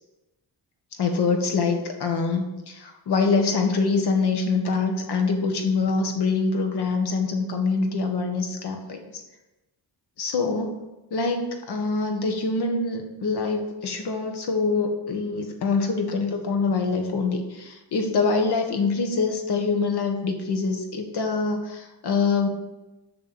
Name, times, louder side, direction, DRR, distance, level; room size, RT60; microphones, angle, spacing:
voice 1, 1.0-9.0 10.2-10.8 11.1-22.5, left 4 dB, 70° left, 4 dB, 1.5 m, -25 dB
6.6 x 6.5 x 7.1 m, 1.0 s
wide cardioid pair, 180°, 41 cm